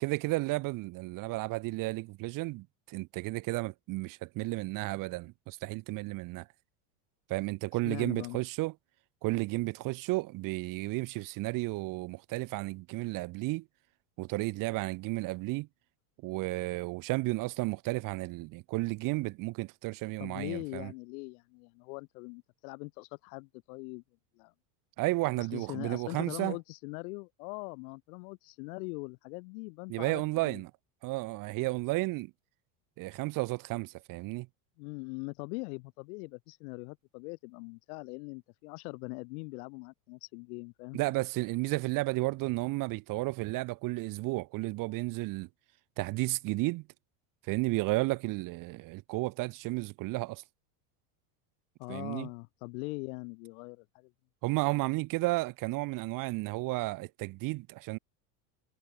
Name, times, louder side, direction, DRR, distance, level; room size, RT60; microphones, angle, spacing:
voice 1, 0.0-6.5 7.3-8.7 9.2-13.7 14.2-15.7 16.2-20.9 25.0-26.6 29.9-30.7 31.0-32.3 33.0-34.5 40.9-45.5 46.0-46.9 47.4-50.4 51.9-52.3 54.4-58.0, right 22 dB, 45° right, 0.7 m, -33 dB
voice 2, 7.8-8.4 20.2-24.0 24.4-24.5 25.4-30.6 34.8-41.0 51.8-54.1, left 30 dB, 70° left, 0.7 m, -42 dB
supercardioid pair, 120°, 45 cm